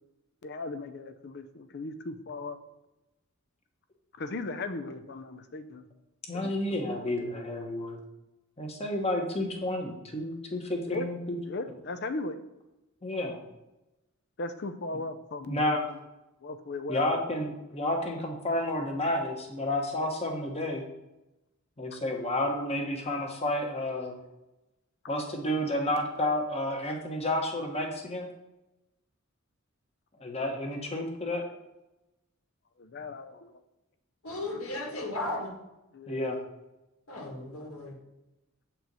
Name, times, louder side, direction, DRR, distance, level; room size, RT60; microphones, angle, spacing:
voice 1, 0.4-2.6 4.2-5.8 6.3-6.5 6.9-7.3 10.9-11.1 11.5-12.4 14.4-16.0 16.4-17.2 32.8-33.5 35.0-35.1 35.9-36.3, left 2 dB, 50° left, 10 dB, 0.6 m, -37 dB
voice 2, 6.3-8.0 8.6-11.4 13.0-13.4 15.5-15.9 16.9-20.8 21.8-24.1 25.1-28.3 30.2-31.4 36.1-36.4, left 1 dB, 30° left, 2 dB, 1.1 m, -31 dB
voice 3, 34.2-35.5 37.1-38.0, left 2 dB, 85° left, 0 dB, 1.7 m, -35 dB
7.7 x 4.5 x 5.4 m, 0.98 s
head